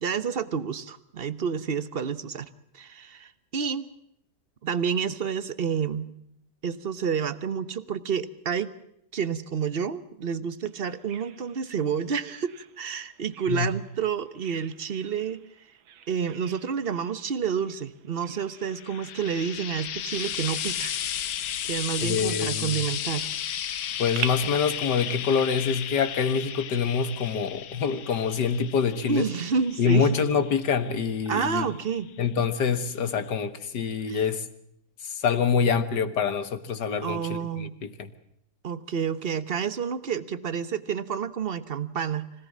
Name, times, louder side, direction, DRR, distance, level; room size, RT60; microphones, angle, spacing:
voice 1, 0.0-2.5 2.7-3.9 4.6-6.1 6.6-8.7 9.1-15.4 16.1-20.9 21.6-23.3 29.1-30.1 31.3-32.1 34.1-34.2 37.0-37.7 38.6-42.3, right 7 dB, 40° right, 15 dB, 0.8 m, -29 dB
Bird vocalization bird call bird song, 10.7-24.3, right 9 dB, 75° right, 1.9 m, -45 dB
Frying (food), 18.7-32.1 33.1-33.2, left 10 dB, 85° left, 1.9 m, -34 dB
voice 2, 22.0-22.8 24.0-29.3 29.8-31.7 32.2-34.5 35.0-38.1, left 6 dB, 60° left, 11 dB, 2.0 m, -26 dB
25.5 x 18.0 x 7.3 m, 0.74 s
omnidirectional pair, 2.2 m